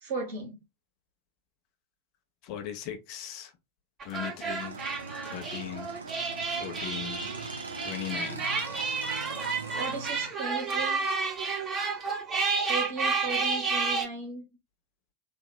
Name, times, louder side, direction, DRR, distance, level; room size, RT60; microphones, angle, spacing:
voice 1, 0.0-0.6 9.7-11.1 12.7-14.4, right 3 dB, 55° right, 1.6 m, -36 dB
voice 2, 2.4-3.5 4.0-4.8 5.2-5.9 6.5-7.3 7.8-8.5, left 10 dB, 45° left, 0.7 m, -38 dB
sound 1, 4.0-14.1, right 4 dB, 25° right, 1.0 m, -31 dB
Motorcycle / Engine, 4.4-10.3, right 4 dB, 75° right, 0.7 m, -41 dB
3.5 x 2.8 x 2.2 m
figure-of-eight pair, 90°, 0 cm